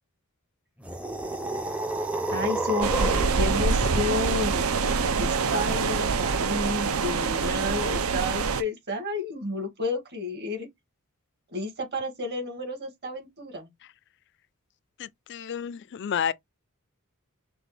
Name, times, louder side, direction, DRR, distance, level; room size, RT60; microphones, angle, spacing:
sound 1, 0.8-3.4, right 2 dB, 5° right, 0.6 m, -30 dB
voice 1, 2.3-4.7 5.2-10.7 11.5-13.7, left 2 dB, 50° right, 2.0 m, -31 dB
sound 2, 2.8-8.6, right 5 dB, 75° right, 0.6 m, -25 dB
voice 2, 15.0-16.3, left 8 dB, 50° left, 0.4 m, -30 dB
6.1 x 2.4 x 3.4 m
head